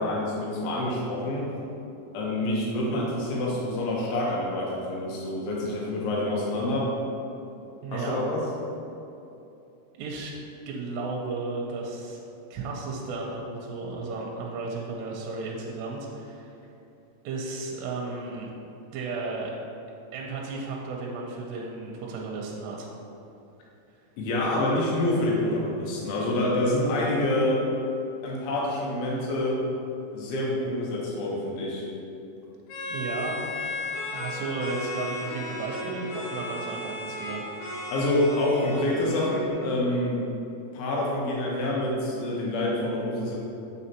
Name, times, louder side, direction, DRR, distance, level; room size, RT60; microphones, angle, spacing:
voice 1, 0.0-1.5 2.1-6.9 7.9-8.4 24.2-27.6 28.2-29.6 30.1-31.8 37.9-40.2 40.7-43.3, left 1 dB, 75° left, -4 dB, 2.6 m, -27 dB
voice 2, 7.8-8.2 10.0-10.4 10.7-12.2 12.5-16.5 17.2-18.5 18.9-19.5 20.1-22.9 32.9-33.4 34.1-37.4, right 3 dB, 85° right, -1 dB, 2.7 m, -34 dB
sound 1, 32.7-39.5, left 1 dB, 90° left, 3.4 m, -35 dB
8.4 x 4.2 x 2.8 m, 2.8 s
omnidirectional pair, 5.1 m